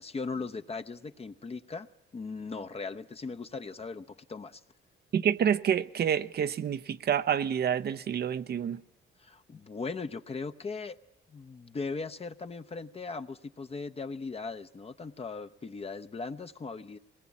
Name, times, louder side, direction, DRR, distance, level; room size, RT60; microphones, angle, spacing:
voice 1, 0.0-4.6 9.2-11.0 11.3-17.0, left 4 dB, 30° left, 0.9 m, -38 dB
voice 2, 5.1-8.8, right 8 dB, 55° right, 0.8 m, -28 dB
21.0 x 19.0 x 8.5 m
cardioid pair, 90°, 20 cm